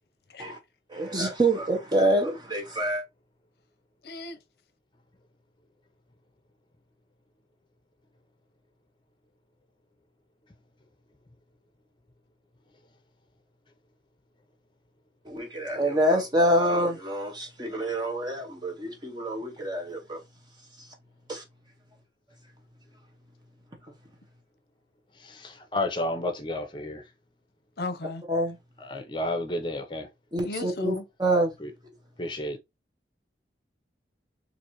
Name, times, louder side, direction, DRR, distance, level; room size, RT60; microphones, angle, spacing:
voice 1, 0.9-3.0 15.2-20.2 21.3-21.4 28.3-28.6 30.3-30.9 31.2-31.5, right 1 dB, 25° right, 1.0 m, -26 dB
voice 2, 4.0-4.4 27.8-28.2 30.4-31.0, left 2 dB, 60° left, 0.6 m, -35 dB
voice 3, 25.2-27.1 28.8-30.1 31.6-31.7 32.2-32.6, left 1 dB, 25° left, 0.7 m, -31 dB
4.0 x 2.6 x 3.0 m
head